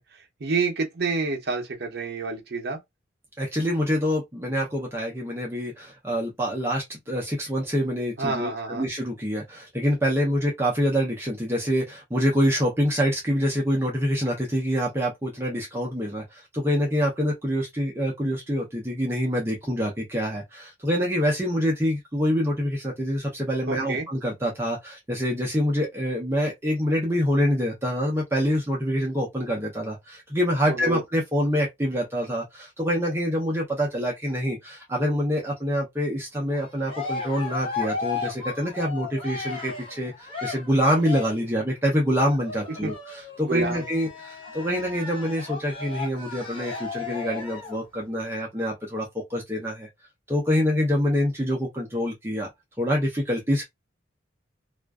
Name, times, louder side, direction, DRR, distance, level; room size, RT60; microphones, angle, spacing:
voice 1, 0.1-2.8 8.2-8.9 23.7-24.0 30.7-31.0 42.8-42.9 43.4-43.9, right 3 dB, 55° right, 0.6 m, -28 dB
voice 2, 3.4-49.9 50.3-52.5 52.8-53.6, equal, 15° right, 0.5 m, -26 dB
Cheering, 36.5-41.5 42.2-47.8, left 4 dB, 25° left, 0.7 m, -35 dB
2.4 x 2.2 x 2.2 m
head